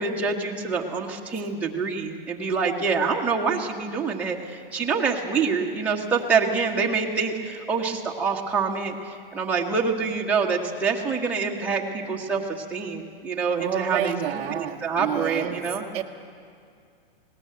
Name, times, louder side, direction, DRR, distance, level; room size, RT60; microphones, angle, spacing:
voice 1, 0.0-8.9 9.3-12.4 12.7-14.2 14.5-15.8, right 5 dB, 5° right, -3 dB, 1.4 m, -26 dB
voice 2, 13.6-15.7 15.9-16.0, right 11 dB, 20° right, 0 dB, 0.8 m, -29 dB
19.5 x 18.5 x 7.8 m, 2.3 s
hypercardioid pair, 160°, 29 cm